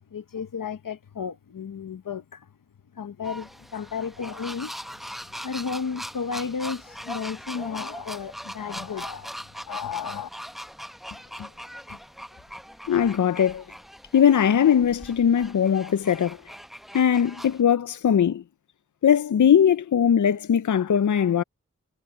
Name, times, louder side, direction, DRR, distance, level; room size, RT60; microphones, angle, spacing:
voice 1, 0.1-2.5 2.9-4.7 5.4-9.3 9.7-10.3, left 6 dB, 90° left, 0.9 m, -33 dB
sound 1, 3.2-17.6, equal, ahead, 0.9 m, -40 dB
voice 2, 12.9-13.6 14.1-16.4 16.9-18.4 19.0-21.4, left 8 dB, 65° left, 0.5 m, -20 dB
cardioid pair, 40°, 32 cm